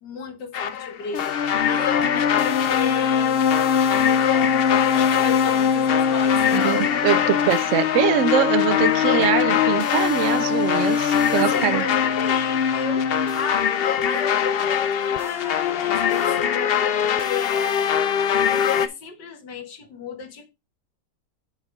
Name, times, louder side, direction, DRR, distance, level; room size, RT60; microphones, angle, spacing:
voice 1, 0.0-3.5 4.9-6.8 11.3-13.7 14.0-18.0 18.5-20.5, left 6 dB, 90° left, 2.1 m, -34 dB
sound 1, 0.5-18.9, left 8 dB, 70° left, 0.5 m, -21 dB
voice 2, 6.5-11.9, right 12 dB, 70° right, 0.7 m, -23 dB
7.0 x 5.7 x 4.6 m
omnidirectional pair, 1.8 m